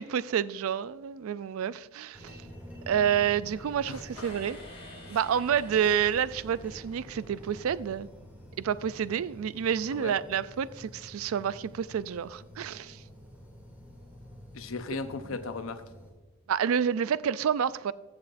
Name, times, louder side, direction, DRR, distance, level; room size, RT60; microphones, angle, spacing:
voice 1, 0.0-2.4 2.9-4.6 5.1-8.1 8.6-13.0 16.5-17.9, right 8 dB, 80° right, 0.4 m, -29 dB
sound 1, 2.1-16.1, equal, 10° right, 2.4 m, -48 dB
voice 2, 3.9-4.3 5.0-5.2 9.9-10.2 14.5-15.8, left 4 dB, 75° left, 0.8 m, -37 dB
sound 2, 4.2-7.3, left 1 dB, 30° left, 3.2 m, -51 dB
14.5 x 7.3 x 2.5 m
head